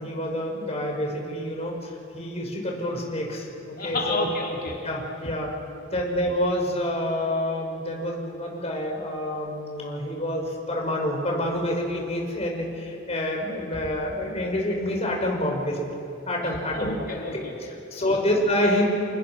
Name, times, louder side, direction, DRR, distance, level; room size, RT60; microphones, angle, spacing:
voice 1, 0.0-4.3 4.8-5.5 5.9-16.0 16.3-17.0 17.6-18.9, left 1 dB, 35° left, 0 dB, 6.1 m, -27 dB
voice 2, 3.8-4.8 16.7-17.5 18.0-18.1, left 2 dB, 50° left, -1 dB, 3.7 m, -30 dB
30.0 x 28.5 x 6.3 m, 2.6 s
head